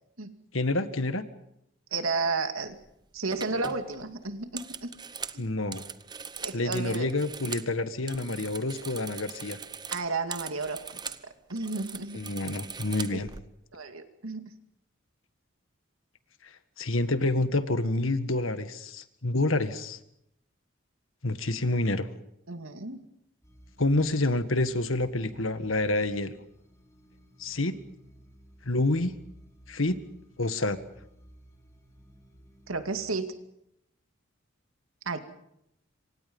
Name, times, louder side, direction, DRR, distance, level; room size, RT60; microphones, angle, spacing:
voice 1, 0.5-1.2 5.4-5.8 6.5-9.6 12.1-13.3 16.8-20.0 21.2-22.1 23.8-26.3 27.4-27.8 28.7-29.1 29.7-30.0 30.4-30.8, left 2 dB, 80° left, 10 dB, 1.7 m, -28 dB
voice 2, 1.9-2.7 3.1-4.9 5.3-5.5 6.4-7.1 9.9-11.0 11.5-12.2 13.1-13.2 13.7-14.5 22.5-23.0 32.7-33.3 35.1-35.2, right 3 dB, 90° right, 7 dB, 2.5 m, -32 dB
sound 1, 2.7-2.9 3.3-7.7 8.0-11.2 11.5-13.4, right 6 dB, 20° right, 0.8 m, -41 dB
sound 2, 23.4-33.2, equal, 15° left, 4.2 m, -56 dB
27.5 x 26.0 x 5.5 m, 0.79 s
head